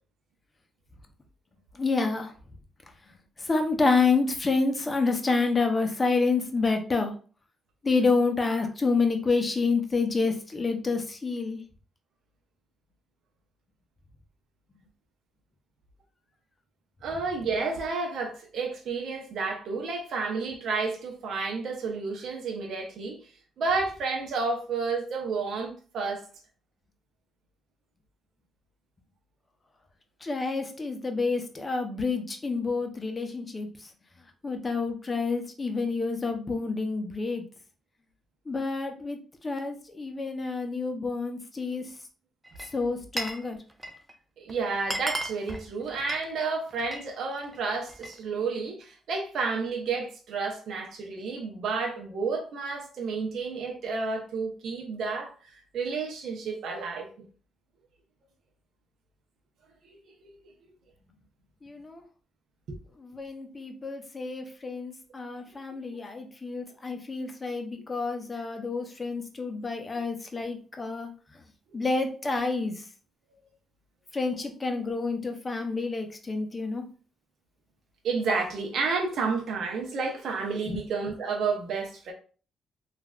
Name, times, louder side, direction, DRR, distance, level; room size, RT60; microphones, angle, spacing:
voice 1, 1.8-2.3 3.5-7.1 7.8-11.6 30.2-33.7 34.4-37.4 38.5-39.2 39.4-41.8 42.7-43.6 61.6-62.0 63.0-71.1 71.7-72.7 74.1-76.8 80.7-80.8, left 4 dB, 30° left, 0.7 m, -28 dB
voice 2, 17.0-23.2 23.6-26.3 44.4-55.3 55.7-57.1 60.2-60.3 62.7-62.8 69.9-70.0 78.0-82.1, right 4 dB, 70° right, 0.6 m, -31 dB
Glass, 42.4-43.4 43.7-44.1 44.5-44.6 44.8-47.1 47.4-48.2, right 1 dB, 15° right, 0.5 m, -35 dB
3.1 x 2.4 x 2.3 m
cardioid pair, 80°, 0 cm